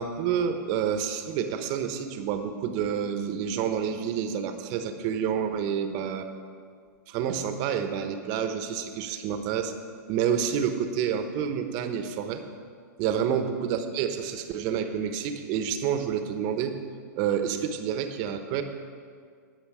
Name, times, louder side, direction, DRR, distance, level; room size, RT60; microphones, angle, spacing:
voice 1, 0.0-6.3 7.1-9.7 10.1-12.4 13.0-16.8 17.2-18.6, right 8 dB, 40° right, 8 dB, 1.0 m, -28 dB
18.0 x 6.4 x 4.9 m, 2.1 s
hypercardioid pair, 135°, 10 cm